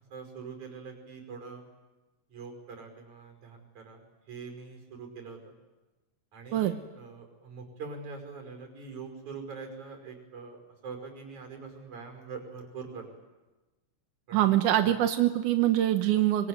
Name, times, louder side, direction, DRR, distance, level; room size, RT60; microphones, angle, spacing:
voice 1, 0.1-1.6 2.3-5.6 6.3-13.1 14.3-14.5 14.9-15.0, right 5 dB, 70° right, 4 dB, 6.9 m, -43 dB
voice 2, 14.3-16.5, right 12 dB, 90° right, 7 dB, 2.6 m, -24 dB
24.5 x 24.0 x 9.6 m, 1.2 s
omnidirectional pair, 3.5 m